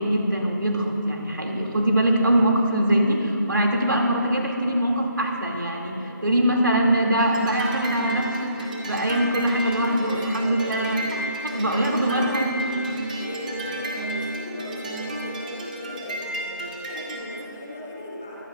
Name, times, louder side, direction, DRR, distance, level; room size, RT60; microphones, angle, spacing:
voice 1, 0.0-12.7, right 1 dB, 75° right, 0 dB, 2.6 m, -23 dB
sound 1, 7.2-17.2, right 1 dB, 25° right, 1.3 m, -32 dB
voice 2, 9.8-12.6 13.1-18.4, left 1 dB, 5° left, -3 dB, 0.4 m, -38 dB
22.5 x 15.0 x 2.5 m, 3.0 s
figure-of-eight pair, 160°, 11 cm